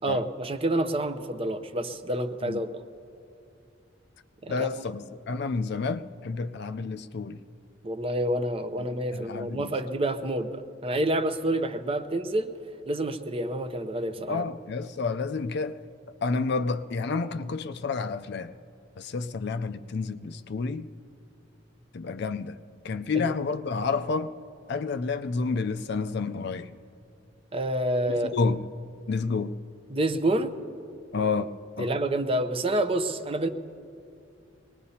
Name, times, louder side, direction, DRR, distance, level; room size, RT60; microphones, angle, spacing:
voice 1, 0.0-2.7 4.4-4.8 7.8-12.5 12.9-14.5 23.1-23.2 27.5-28.4 29.9-30.6 31.8-33.5, right 1 dB, 30° right, 0.6 m, -28 dB
voice 2, 4.5-7.4 8.8-9.7 14.3-15.8 16.2-18.5 19.0-20.9 21.9-22.6 22.8-24.3 24.7-26.8 28.1-28.6 29.1-29.5 31.1-31.5 31.8-31.9, left 4 dB, 55° left, 0.4 m, -30 dB
23.5 x 20.0 x 2.8 m
head